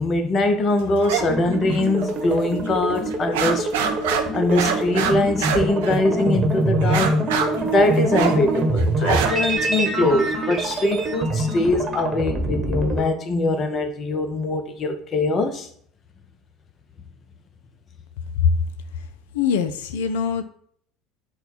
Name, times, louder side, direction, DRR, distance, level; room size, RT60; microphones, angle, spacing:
voice 1, 0.0-3.7 4.3-7.2 7.6-15.7, left 2 dB, 40° left, 0.7 m, -22 dB
sound 1, 1.0-1.2 1.5-2.3 2.6-2.7 3.1-6.3 6.8-9.6, right 7 dB, 70° right, 0.5 m, -26 dB
sound 2, 1.1-13.0, right 1 dB, 30° right, 1.0 m, -24 dB
voice 2, 19.3-20.4, left 7 dB, 70° left, 0.4 m, -22 dB
4.2 x 2.2 x 4.1 m
hypercardioid pair, 70°, 0 cm